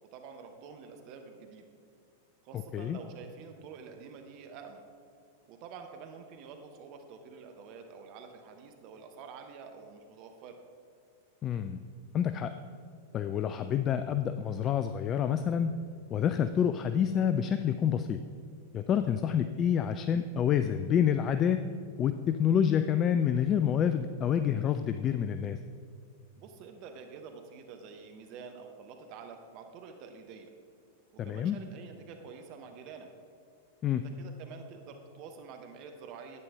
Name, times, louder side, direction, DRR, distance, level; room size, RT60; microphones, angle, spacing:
voice 1, 0.0-1.7 2.4-4.9 5.5-10.6 26.4-30.5 31.2-33.1 33.9-36.4, right 5 dB, 45° right, 5 dB, 0.8 m, -48 dB
voice 2, 2.5-3.0 11.4-11.8 12.1-12.5 13.1-15.7 16.1-18.2 18.7-21.6 22.0-25.6 31.2-31.6 33.8-34.0, left 9 dB, 30° left, 10 dB, 0.3 m, -28 dB
10.5 x 8.7 x 3.4 m, 2.2 s
figure-of-eight pair, 95°, 0 cm